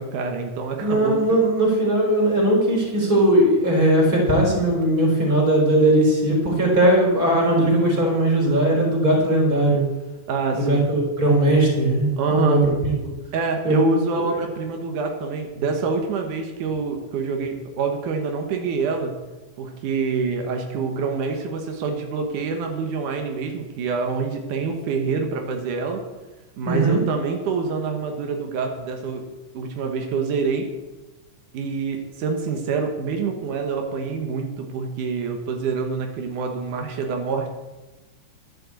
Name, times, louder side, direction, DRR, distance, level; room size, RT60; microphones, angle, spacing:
voice 1, 0.0-1.5 10.3-10.9 12.2-12.6 13.3-19.2 19.6-26.0 26.6-29.3 29.5-30.7 31.5-37.5, right 4 dB, 85° right, 4 dB, 2.8 m, -26 dB
voice 2, 0.8-9.8 10.5-13.1 13.6-13.8 14.1-14.2 26.7-27.0, right 1 dB, 30° right, -2 dB, 4.3 m, -19 dB
11.5 x 7.6 x 8.2 m, 1.1 s
omnidirectional pair, 3.5 m